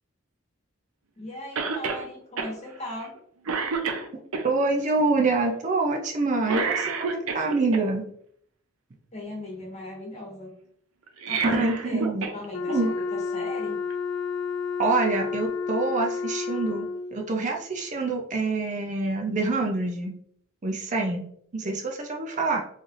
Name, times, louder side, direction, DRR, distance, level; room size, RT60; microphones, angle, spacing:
voice 1, 1.2-3.1 9.1-10.5 11.3-12.0 12.3-13.8, left 1 dB, 30° left, -2 dB, 1.2 m, -37 dB
Cough, 1.6-2.0 2.4-2.5 3.0-3.2 3.5-4.4 6.4-7.8 11.1-12.4 12.7-12.8 13.9-14.0, right 5 dB, 85° right, 0.6 m, -29 dB
voice 2, 4.4-8.0 11.4-12.3 12.7-12.9 14.8-20.1 20.6-21.2 21.5-22.6, right 3 dB, 35° right, 2 dB, 0.4 m, -26 dB
Wind instrument woodwind instrument, 12.5-17.2, left 5 dB, 85° left, 0.4 m, -30 dB
3.9 x 3.2 x 2.5 m, 0.66 s
head